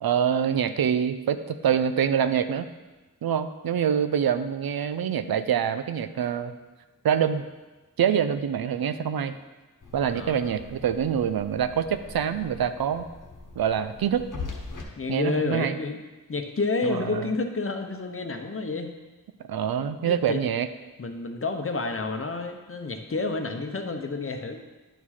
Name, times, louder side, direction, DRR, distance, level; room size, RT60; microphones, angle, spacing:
voice 1, 0.0-2.7 3.2-6.5 7.0-7.4 8.0-9.4 9.9-13.1 13.6-14.3 15.1-15.8 16.8-17.3 19.5-20.7, right 8 dB, 90° right, 11 dB, 0.5 m, -25 dB
sound 1, 9.8-14.8, left 4 dB, 60° left, 1.1 m, -42 dB
voice 2, 10.1-10.5 15.0-16.0 16.3-18.9 20.1-20.4 21.0-24.6, left 3 dB, 40° left, 5 dB, 0.8 m, -30 dB
10.0 x 4.7 x 4.3 m, 1.2 s
wide cardioid pair, 90°, 35 cm